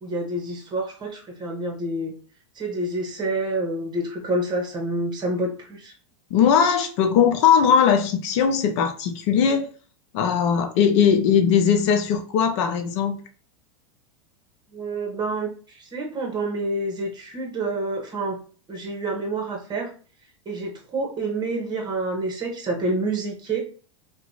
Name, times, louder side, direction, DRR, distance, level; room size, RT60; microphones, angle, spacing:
voice 1, 0.0-2.1 2.5-5.9 14.7-18.4 18.7-19.9 20.4-23.6, right 2 dB, 25° right, 1.3 m, -28 dB
voice 2, 6.3-9.7 10.1-13.2, left 7 dB, 60° left, 0.7 m, -19 dB
2.8 x 2.3 x 3.9 m
hypercardioid pair, 110°, 16 cm